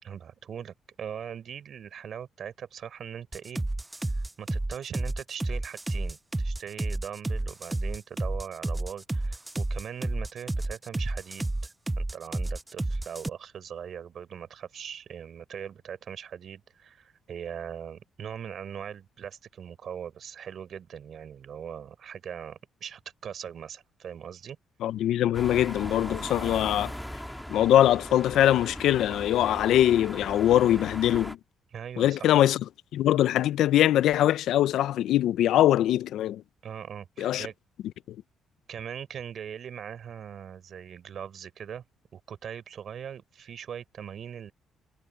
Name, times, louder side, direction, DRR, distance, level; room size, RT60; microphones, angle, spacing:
voice 1, 0.0-3.6 4.1-24.6 31.7-32.3 36.6-37.5 38.7-41.8 42.1-44.5, right 8 dB, 60° right, 4.5 m, -40 dB
sound 1, 3.3-13.3, right 2 dB, 15° right, 0.5 m, -30 dB
voice 2, 24.8-26.9 27.5-31.4 32.0-32.6 32.9-36.4 37.2-37.5, left 12 dB, 80° left, 0.6 m, -22 dB
sound 2, 25.3-31.3, equal, 5° left, 2.8 m, -39 dB
cardioid pair, 90°, 0 cm